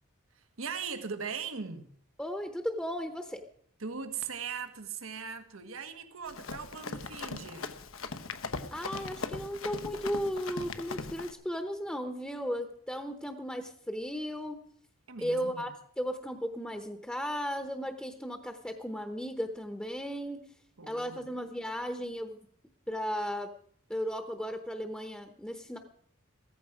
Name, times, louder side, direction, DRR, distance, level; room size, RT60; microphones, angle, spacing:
voice 1, 0.3-1.9 3.8-7.7 15.1-15.7 20.8-21.3, right 6 dB, 85° right, 8 dB, 1.4 m, -39 dB
voice 2, 2.2-3.4 8.7-14.6 15.2-20.4 20.8-22.5 22.9-23.5 23.9-25.8, equal, 5° left, 6 dB, 0.8 m, -35 dB
Run, 6.3-11.3, left 4 dB, 85° left, 1.0 m, -39 dB
15.0 x 14.0 x 5.0 m, 0.64 s
head